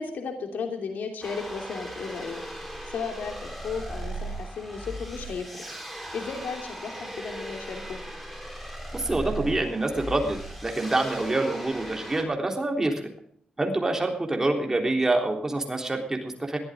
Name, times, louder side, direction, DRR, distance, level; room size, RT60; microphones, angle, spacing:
voice 1, 0.0-2.4 2.9-5.6 6.1-8.0, left 5 dB, 85° left, 4 dB, 3.0 m, -34 dB
sound 1, 1.2-12.2, right 1 dB, ahead, 4.1 m, -38 dB
voice 2, 8.9-12.9 13.6-16.6, right 2 dB, 15° right, 2 dB, 3.6 m, -26 dB
21.5 x 14.0 x 3.7 m, 0.62 s
wide cardioid pair, 155°, 3 cm